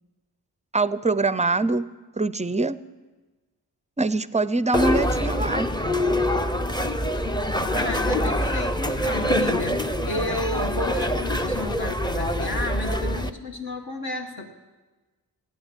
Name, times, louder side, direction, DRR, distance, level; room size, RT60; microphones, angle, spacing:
voice 1, 0.7-1.9 2.2-2.8 4.0-5.7, right 3 dB, 20° right, 16 dB, 0.4 m, -23 dB
sound 1, 4.7-13.3, equal, 10° left, 0.7 m, -25 dB
voice 2, 7.7-14.5, left 2 dB, 65° left, 4 dB, 1.9 m, -32 dB
17.0 x 9.3 x 8.1 m, 1.3 s
wide cardioid pair, 110°, 40 cm